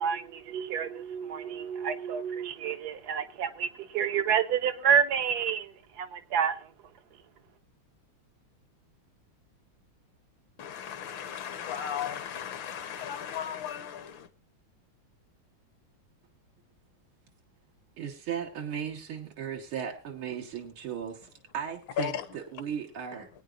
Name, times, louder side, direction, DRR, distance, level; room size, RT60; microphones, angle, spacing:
voice 1, 0.0-6.7, right 7 dB, 65° right, 1.1 m, -29 dB
voice 2, 10.6-14.3 22.0-22.2, left 9 dB, 70° left, 1.7 m, -35 dB
voice 3, 18.0-23.3, right 8 dB, 90° right, 2.2 m, -36 dB
22.0 x 9.2 x 2.5 m
omnidirectional pair, 2.2 m